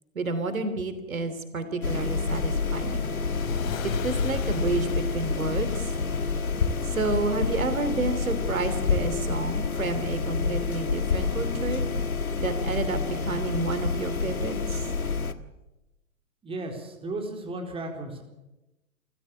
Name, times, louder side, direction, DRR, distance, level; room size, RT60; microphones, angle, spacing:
voice 1, 0.1-3.1 3.8-5.9 6.8-11.9 12.4-14.9, right 3 dB, 70° right, 10 dB, 3.2 m, -30 dB
sound 1, 1.8-15.3, left 4 dB, 80° left, 1.6 m, -29 dB
Car / Engine starting / Accelerating revving vroom, 2.3-9.4, left 9 dB, 35° left, 3.5 m, -42 dB
sound 2, 5.3-12.2, left 6 dB, 60° left, 4.5 m, -35 dB
voice 2, 16.4-18.2, right 2 dB, 15° right, 2 dB, 4.1 m, -35 dB
28.5 x 15.5 x 8.6 m, 1.0 s
figure-of-eight pair, 110°, 42 cm